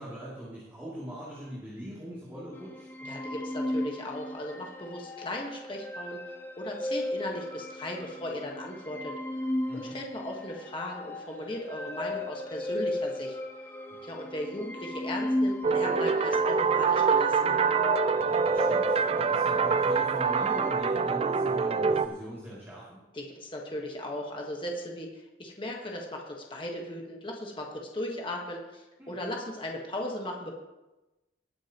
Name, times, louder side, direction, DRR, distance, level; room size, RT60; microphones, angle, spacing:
voice 1, 0.0-2.9 9.7-10.0 13.9-14.0 18.3-23.0 29.0-29.2, equal, 15° right, -9 dB, 2.8 m, -42 dB
sound 1, 2.5-20.7, left 1 dB, 10° left, 0.9 m, -36 dB
voice 2, 3.0-9.1 9.7-13.4 14.0-17.6 23.1-30.5, left 1 dB, 25° left, 0 dB, 1.4 m, -37 dB
sound 2, 15.6-22.1, right 5 dB, 30° right, 0.4 m, -25 dB
19.5 x 8.7 x 3.0 m, 1.0 s
head